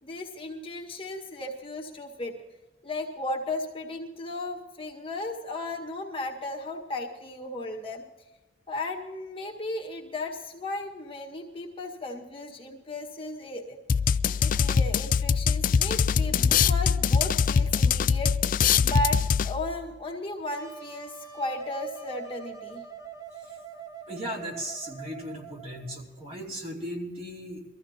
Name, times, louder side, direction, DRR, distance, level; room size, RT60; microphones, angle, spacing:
voice 1, 0.0-2.4 2.8-8.0 8.7-13.8 14.1-18.6 18.8-22.8, left 1 dB, 30° left, 0 dB, 1.7 m, -35 dB
sound 1, 13.9-19.8, left 6 dB, 45° left, 0.4 m, -23 dB
Wind instrument woodwind instrument, 20.5-26.0, right 6 dB, 20° right, 0.9 m, -44 dB
voice 2, 24.1-27.6, equal, 35° right, -1 dB, 2.8 m, -37 dB
22.5 x 14.5 x 2.9 m, 1.1 s
head